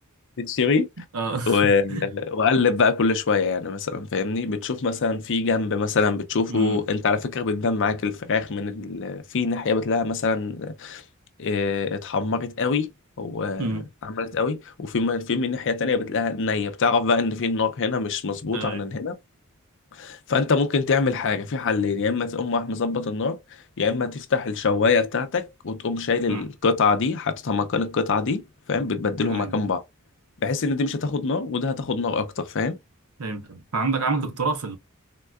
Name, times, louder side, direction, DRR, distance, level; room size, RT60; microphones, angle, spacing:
voice 1, 0.4-0.9 1.5-11.0 11.4-12.9 13.2-19.2 20.0-23.4 23.8-28.4 28.7-29.8 30.4-32.8, left 4 dB, 60° left, 0.6 m, -24 dB
voice 2, 1.1-2.1 6.5-6.9 13.6-13.9 18.5-18.8 26.3-26.5 29.2-29.5 33.2-34.8, right 3 dB, 85° right, 0.7 m, -28 dB
3.6 x 2.2 x 2.3 m
head